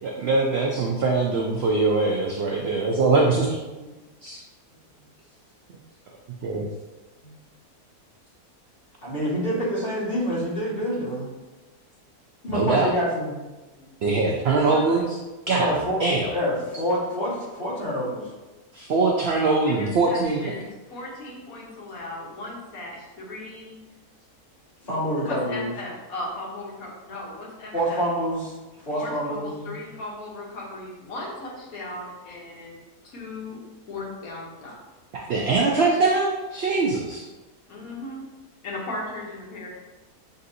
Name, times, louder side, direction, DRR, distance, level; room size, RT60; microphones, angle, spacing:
voice 1, 0.0-3.5 4.2-4.4 6.4-6.7 12.5-12.9 14.0-15.2 15.5-15.7 16.0-16.3 18.7-20.4 35.1-37.2, right 3 dB, 75° right, 0 dB, 0.5 m, -22 dB
voice 2, 2.4-2.8 14.4-15.1 19.3-23.8 25.2-28.0 28.9-32.8 33.0-33.6 33.9-34.8 37.7-38.3 38.6-39.7, left 2 dB, 70° left, -3 dB, 1.3 m, -37 dB
voice 3, 9.0-11.3 12.4-13.3 13.7-13.8 15.5-16.0 16.3-18.3 24.8-25.7 27.7-29.7, equal, 40° left, -8 dB, 1.8 m, -27 dB
6.2 x 2.7 x 2.5 m, 1.1 s
omnidirectional pair, 1.6 m